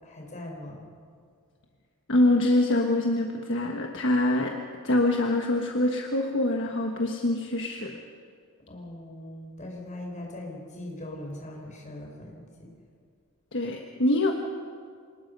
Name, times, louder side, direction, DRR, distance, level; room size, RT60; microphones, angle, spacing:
voice 1, 0.0-0.9 8.7-12.7, left 1 dB, 35° left, 0 dB, 4.9 m, -40 dB
voice 2, 2.1-4.5 4.8-7.9 13.5-14.3, left 1 dB, 55° left, 2 dB, 1.4 m, -24 dB
26.5 x 19.5 x 5.4 m, 2.2 s
head